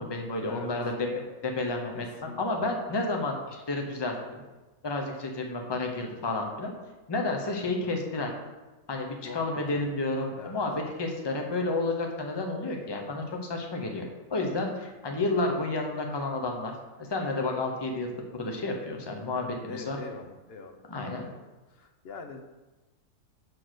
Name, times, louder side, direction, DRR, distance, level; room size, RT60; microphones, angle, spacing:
voice 1, 0.0-4.4 4.8-6.7 7.1-8.3 8.9-16.7 17.0-20.0 20.9-21.3, left 2 dB, 20° left, 2 dB, 0.8 m, -31 dB
voice 2, 1.9-2.7 9.2-9.4 9.7-9.8 10.4-10.6 19.4-20.8 21.2-21.4 21.7-22.5, left 4 dB, 55° left, 5 dB, 0.8 m, -43 dB
6.7 x 4.1 x 6.4 m, 1.1 s
omnidirectional pair, 1.6 m